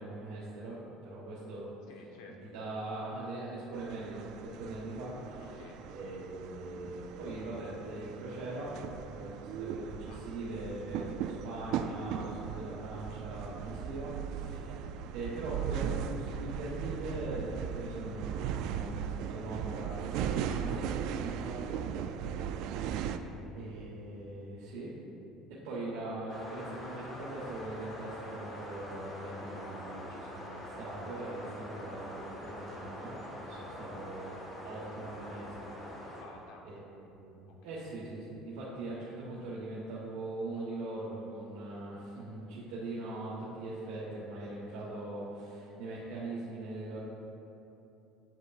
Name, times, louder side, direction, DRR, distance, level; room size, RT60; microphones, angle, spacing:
voice 1, 0.0-1.7 2.3-5.4 5.9-8.7 9.1-14.8 15.1-21.8 23.5-24.9 25.5-33.1 33.4-36.1 36.6-47.0, right 2 dB, 90° right, -8 dB, 1.3 m, -41 dB
voice 2, 1.9-2.5 5.4-5.8 10.1-10.3 22.8-23.4 36.2-36.9 37.5-37.8, left 3 dB, 75° left, 1 dB, 1.0 m, -54 dB
sound 1, 3.7-23.2, right 8 dB, 65° right, 0.3 m, -38 dB
sound 2, 26.3-36.2, left 1 dB, 25° left, 1.4 m, -44 dB
8.2 x 7.7 x 2.4 m, 2.9 s
cardioid pair, 150°, 0 cm